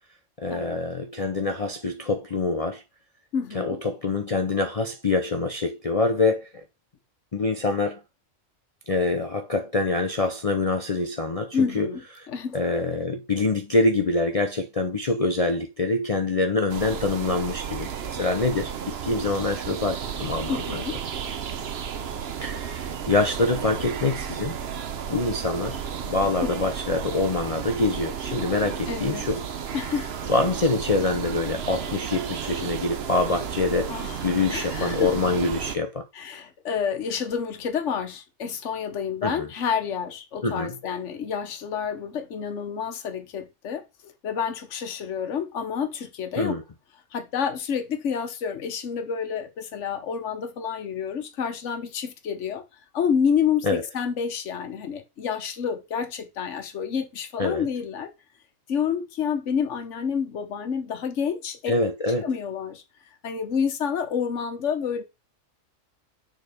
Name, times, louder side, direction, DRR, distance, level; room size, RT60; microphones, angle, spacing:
voice 1, 0.4-2.8 3.5-6.6 7.3-8.0 8.9-12.3 12.5-20.8 22.4-24.6 25.1-29.5 30.3-36.0 39.2-39.5 40.4-40.8 46.4-46.6 53.6-53.8 57.4-57.7 61.7-62.3, left 3 dB, 35° left, 0.6 m, -25 dB
voice 2, 3.3-3.8 11.5-12.0 12.3-12.6 20.5-21.0 26.4-26.6 28.9-29.3 29.7-30.2 33.9-35.1 36.1-46.6 47.1-52.6 52.9-58.1 58.7-61.7 62.2-62.8 63.2-65.0, left 7 dB, 60° left, 1.4 m, -29 dB
sound 1, 16.7-35.8, right 7 dB, 55° right, 1.0 m, -33 dB
6.8 x 4.1 x 5.0 m
omnidirectional pair, 1.4 m